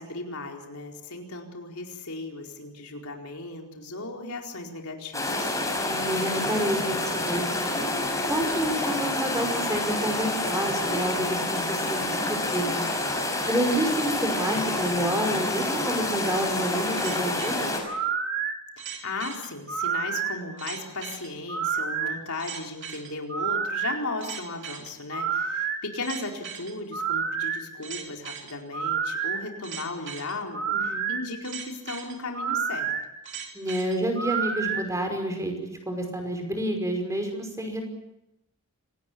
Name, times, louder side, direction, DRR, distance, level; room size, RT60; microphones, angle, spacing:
voice 1, 0.0-5.5 19.0-33.1, left 3 dB, 75° left, 1 dB, 4.5 m, -36 dB
sound 1, 5.1-17.8, left 2 dB, 15° left, 6.3 m, -28 dB
voice 2, 5.8-7.7 8.3-12.2 12.5-12.9 13.5-17.7 30.7-31.1 33.5-35.5 35.9-37.8, right 1 dB, 15° right, 4 dB, 5.4 m, -29 dB
sound 2, 17.0-34.8, right 6 dB, 55° right, 3.1 m, -30 dB
27.0 x 19.0 x 8.5 m, 0.87 s
head